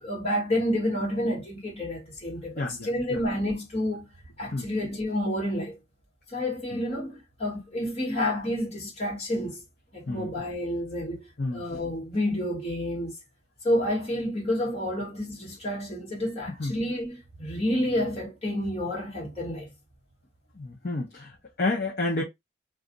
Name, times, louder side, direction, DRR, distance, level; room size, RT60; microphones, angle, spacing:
voice 1, 0.0-4.1 4.4-5.8 6.3-9.6 9.9-13.2 13.6-19.7, left 1 dB, 30° left, 1.5 m, -29 dB
voice 2, 2.6-3.2 4.5-4.7 6.7-6.8 10.1-10.3 11.4-11.7 16.6-16.8 20.6-22.2, left 2 dB, 45° left, 0.8 m, -30 dB
2.5 x 2.4 x 3.8 m
head